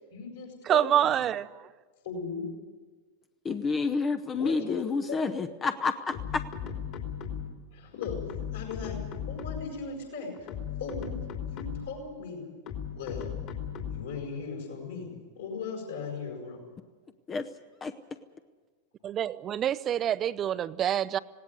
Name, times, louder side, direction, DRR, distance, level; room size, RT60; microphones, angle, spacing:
voice 1, 0.1-1.2 2.0-2.5 4.3-5.3 7.7-8.2 8.5-9.0 9.3-10.3 10.8-11.2 11.5-12.4 12.9-13.3 13.9-15.1 15.4-16.6, left 5 dB, 65° left, 1 dB, 7.3 m, -38 dB
voice 2, 0.6-1.7 19.0-21.2, right 10 dB, 30° right, 16 dB, 0.6 m, -27 dB
voice 3, 3.4-6.4 17.3-17.5 17.8-17.9, left 4 dB, 20° left, 9 dB, 0.8 m, -29 dB
sound 1, 6.1-7.6 8.0-9.8 10.3-12.0 12.7-14.2, left 8 dB, 40° left, 3.0 m, -37 dB
18.5 x 17.5 x 9.7 m, 1.4 s
figure-of-eight pair, 90°, 0 cm